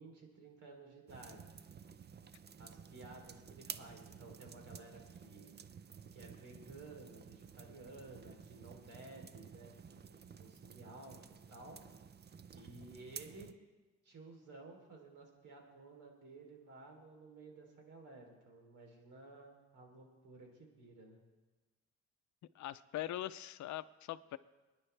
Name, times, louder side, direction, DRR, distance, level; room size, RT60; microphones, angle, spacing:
voice 1, 0.0-1.6 2.6-5.5 6.1-11.8 12.5-13.5 14.0-21.2, right 2 dB, 85° right, 1 dB, 3.4 m, -55 dB
sound 1, 1.1-13.5, right 6 dB, 35° right, 0.6 m, -53 dB
voice 2, 22.5-24.4, left 13 dB, 70° left, 14 dB, 0.6 m, -42 dB
27.0 x 10.0 x 3.3 m, 1.2 s
cardioid pair, 90°, 30 cm